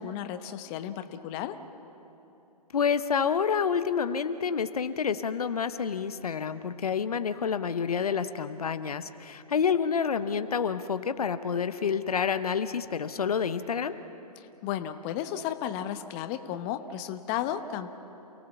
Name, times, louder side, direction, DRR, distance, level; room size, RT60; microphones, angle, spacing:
voice 1, 0.0-1.6 14.4-17.9, left 10 dB, 25° left, 9 dB, 1.0 m, -34 dB
voice 2, 2.7-14.0, left 6 dB, 65° left, 11 dB, 1.0 m, -28 dB
28.5 x 17.5 x 7.2 m, 3.0 s
figure-of-eight pair, 125°, 20 cm